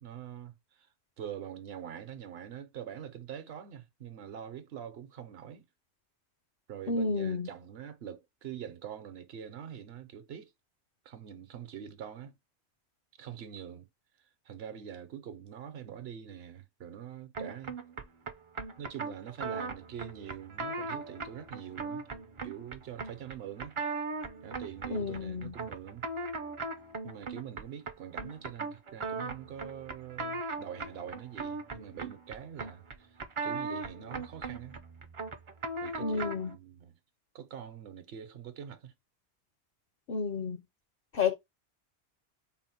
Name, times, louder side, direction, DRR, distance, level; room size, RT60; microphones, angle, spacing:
voice 1, 0.0-0.9 1.2-5.7 6.7-10.5 11.0-12.3 13.2-13.9 14.5-17.8 18.8-22.0 22.4-23.8 24.4-26.1 27.0-33.1 33.4-34.8 35.8-36.9 37.3-38.9, right 9 dB, 70° right, 0.9 m, -44 dB
voice 2, 6.9-7.5 24.9-25.5 36.0-36.5 40.1-40.6 41.1-41.4, left 4 dB, 60° left, 0.7 m, -31 dB
sound 1, 17.3-36.5, right 3 dB, 40° right, 0.4 m, -39 dB
3.9 x 2.0 x 4.2 m
omnidirectional pair, 1.1 m